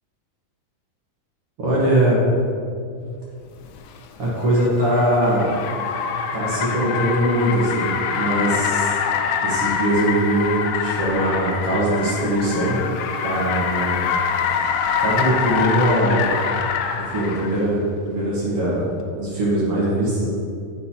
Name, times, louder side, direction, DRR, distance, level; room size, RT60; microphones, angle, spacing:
voice 1, 1.6-2.2 4.2-5.5 6.3-9.0 9.4-12.8 13.2-14.1 15.0-16.3 17.1-17.8 18.1-18.8 19.1-20.3, right 1 dB, 55° right, -7 dB, 1.9 m, -21 dB
Car, 3.7-17.6, left 6 dB, 85° left, 2.3 m, -25 dB
9.5 x 6.2 x 2.8 m, 2.3 s
omnidirectional pair, 4.1 m